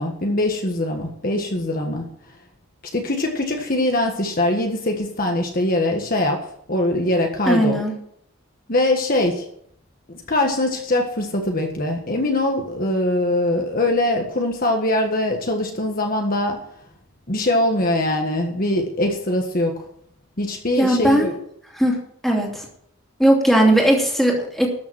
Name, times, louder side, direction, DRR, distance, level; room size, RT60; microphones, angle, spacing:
voice 1, 0.0-2.1 2.9-7.8 8.7-9.5 10.1-16.6 17.3-19.8 20.4-21.3, left 1 dB, 40° left, 2 dB, 1.5 m, -22 dB
voice 2, 7.5-7.9 20.8-21.3 21.7-22.0 22.2-22.7 23.2-24.7, right 1 dB, ahead, -1 dB, 2.8 m, -18 dB
13.0 x 7.0 x 7.6 m, 0.68 s
head